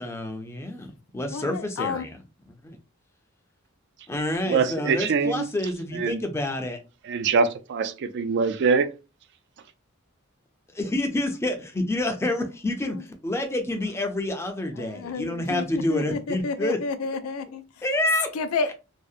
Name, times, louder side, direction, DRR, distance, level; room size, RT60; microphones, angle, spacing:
voice 1, 0.0-2.2 2.5-2.8 4.1-6.8 10.7-16.8 17.8-18.3, left 1 dB, 15° left, 0.4 m, -28 dB
voice 2, 1.3-2.0 12.9-13.0 14.7-17.6 18.3-18.7, left 4 dB, 90° left, 0.4 m, -30 dB
voice 3, 4.4-5.4 5.9-6.2 7.0-8.9, right 5 dB, 55° right, 0.3 m, -23 dB
2.7 x 2.0 x 2.3 m
head